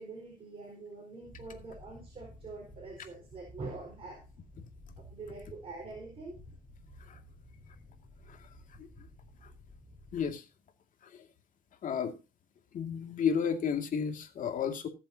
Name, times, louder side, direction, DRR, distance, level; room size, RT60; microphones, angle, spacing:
voice 1, 0.0-4.2 5.1-6.4, right 3 dB, 35° right, 0 dB, 4.5 m, -45 dB
sound 1, 1.2-10.3, left 1 dB, 5° left, 4.7 m, -54 dB
voice 2, 10.1-10.4 11.1-11.2 11.8-12.1 12.7-14.9, left 7 dB, 50° left, 5 dB, 2.3 m, -32 dB
19.5 x 7.4 x 2.8 m, 0.30 s
cardioid pair, 110°, 17 cm